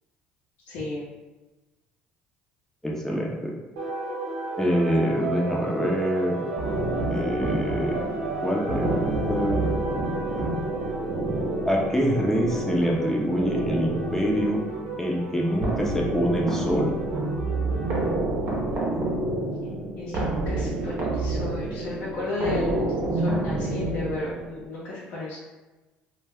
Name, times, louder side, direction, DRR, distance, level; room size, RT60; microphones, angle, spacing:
voice 1, 0.7-1.1 20.0-25.4, left 2 dB, 70° left, -9 dB, 0.7 m, -33 dB
voice 2, 2.8-3.5 4.6-6.4 7.1-8.0 8.4-9.7 11.7-14.6 15.0-16.9, equal, 10° left, -2 dB, 0.6 m, -25 dB
sound 1, 3.8-18.1, right 2 dB, 90° right, 0.7 m, -34 dB
sound 2, 6.6-24.7, right 2 dB, 55° right, 0.8 m, -29 dB
2.2 x 2.1 x 3.4 m, 1.2 s
hypercardioid pair, 65°, 4 cm